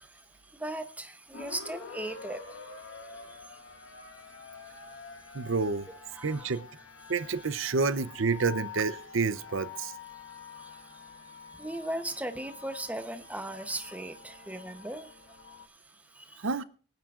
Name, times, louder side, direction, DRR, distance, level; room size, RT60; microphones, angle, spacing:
voice 1, 0.0-5.5 6.1-6.6 10.1-16.5, right 1 dB, 5° right, 0.9 m, -40 dB
sound 1, 1.3-15.7, left 5 dB, 70° left, 1.5 m, -47 dB
voice 2, 5.3-5.9 6.2-6.6 7.1-9.9 16.4-16.6, right 4 dB, 65° right, 0.7 m, -29 dB
23.5 x 9.5 x 2.5 m
head